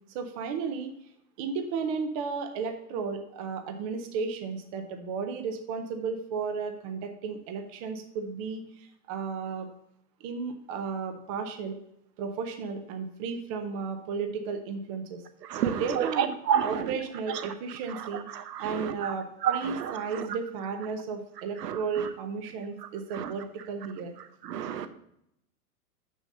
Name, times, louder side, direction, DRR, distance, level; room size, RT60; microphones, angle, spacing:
voice 1, 0.1-0.9 1.4-9.7 10.2-11.8 12.2-15.2 15.6-16.3 16.6-18.2 18.6-24.1, right 5 dB, 25° right, 6 dB, 0.5 m, -34 dB
voice 2, 15.5-16.9 17.9-19.1 19.4-20.0 21.6-21.8 23.1-23.3 24.4-24.9, right 8 dB, 85° right, 10 dB, 0.9 m, -30 dB
6.7 x 6.4 x 5.3 m, 0.77 s
hypercardioid pair, 150°, 47 cm